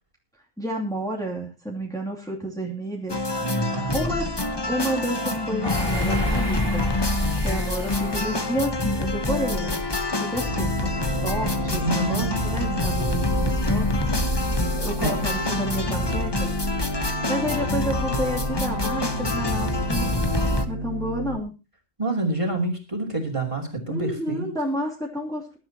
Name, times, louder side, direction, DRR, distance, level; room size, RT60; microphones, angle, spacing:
voice 1, 0.6-3.2 3.9-6.9 7.3-9.8 10.2-13.9 14.8-16.5 17.3-20.2 20.7-21.5 23.9-25.6, right 1 dB, 5° left, -2 dB, 2.7 m, -30 dB
sound 1, 3.1-20.7, left 2 dB, 20° left, 1.0 m, -26 dB
voice 2, 3.3-4.1 11.7-12.8 15.0-15.1 22.0-24.5, right 2 dB, 25° right, 4 dB, 3.3 m, -28 dB
sound 2, 5.6-9.1 9.6-9.7, left 1 dB, 45° left, 5.9 m, -35 dB
sound 3, 10.5-21.4, right 1 dB, 60° right, 3.0 m, -33 dB
21.5 x 11.5 x 2.9 m, 0.28 s
omnidirectional pair, 1.4 m